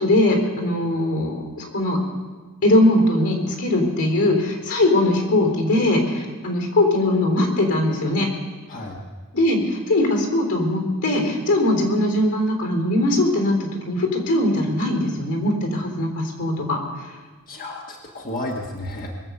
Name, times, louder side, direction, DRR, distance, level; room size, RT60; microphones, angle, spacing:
voice 1, 0.0-2.0 2.6-8.3 9.3-16.8, left 1 dB, 85° left, 2 dB, 3.9 m, -20 dB
voice 2, 8.7-9.0 17.5-19.1, left 1 dB, 40° left, 0 dB, 1.4 m, -32 dB
22.5 x 8.0 x 7.0 m, 1.3 s
head